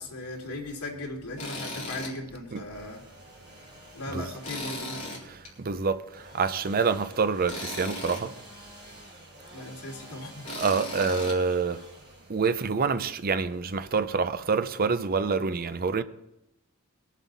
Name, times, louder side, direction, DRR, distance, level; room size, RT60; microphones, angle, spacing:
voice 1, 0.0-3.0 3.9-5.2 9.5-10.4, left 2 dB, 85° left, 3.2 m, -38 dB
Tools, 1.4-2.1 2.6-2.7 4.4-5.5 7.5-8.2 10.4-11.4, left 1 dB, 35° left, 3.5 m, -37 dB
Engine / Sawing, 2.5-14.2, equal, 20° right, 4.8 m, -50 dB
voice 2, 5.3-6.0 6.3-8.3 10.5-11.8 12.3-16.0, right 5 dB, 40° right, 0.6 m, -27 dB
22.0 x 7.4 x 4.1 m
head